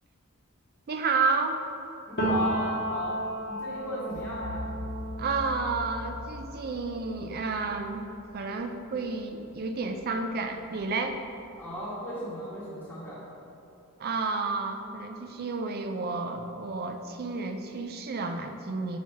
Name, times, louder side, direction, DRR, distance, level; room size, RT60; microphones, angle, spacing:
voice 1, 0.9-1.6 5.2-8.0 8.3-11.2 14.0-19.0, right 4 dB, 45° right, 6 dB, 0.4 m, -31 dB
voice 2, 2.1-4.6 11.6-13.2, equal, 10° left, -12 dB, 1.4 m, -37 dB
Piano, 2.2-9.8 10.1-11.7, right 1 dB, 50° left, 1.1 m, -35 dB
sound 1, 4.1-9.0, left 2 dB, 80° left, 0.5 m, -41 dB
5.5 x 4.6 x 4.6 m, 2.7 s
head